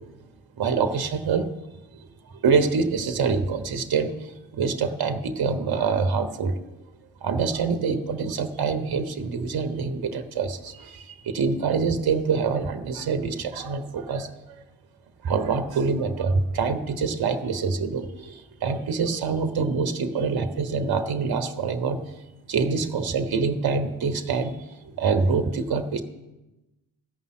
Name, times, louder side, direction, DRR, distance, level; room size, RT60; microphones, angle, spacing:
voice 1, 0.6-1.5 2.4-4.1 4.5-6.5 7.2-14.3 15.2-22.0 22.5-24.6 25.0-26.0, right 5 dB, 45° right, 10 dB, 1.2 m, -25 dB
14.5 x 5.6 x 7.5 m, 1.0 s
hypercardioid pair, 40°, 50 cm